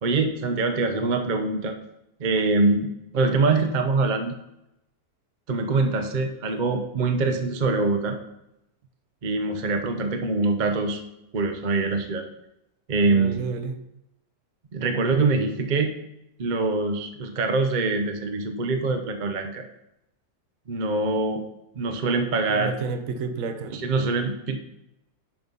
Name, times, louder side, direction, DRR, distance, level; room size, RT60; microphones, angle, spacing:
voice 1, 0.0-1.7 2.2-4.3 5.5-8.2 9.2-11.0 11.3-12.2 12.9-13.4 14.7-15.9 16.4-19.7 20.7-21.4 21.7-22.7 23.7-24.6, right 3 dB, 40° right, 5 dB, 0.7 m, -24 dB
voice 2, 13.1-13.7 22.5-23.8, right 5 dB, 65° right, 8 dB, 1.2 m, -30 dB
10.5 x 3.9 x 5.4 m, 0.85 s
omnidirectional pair, 1.7 m